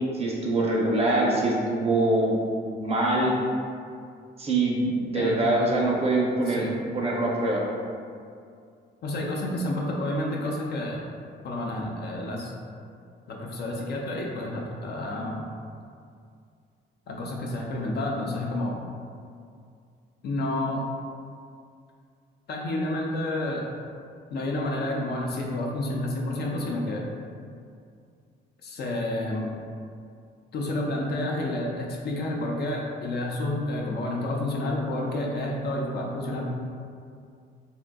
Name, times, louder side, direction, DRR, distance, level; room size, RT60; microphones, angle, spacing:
voice 1, 0.1-2.4 2.7-3.3 4.4-7.6, right 2 dB, 30° right, -3 dB, 0.6 m, -24 dB
voice 2, 9.0-11.0 11.4-12.5 13.3-15.5 17.1-18.7 20.2-20.9 22.5-23.7 24.3-27.0 28.6-29.5 30.5-36.5, left 1 dB, 55° left, -1 dB, 0.5 m, -30 dB
3.6 x 2.5 x 2.2 m, 2.3 s
cardioid pair, 90°, 20 cm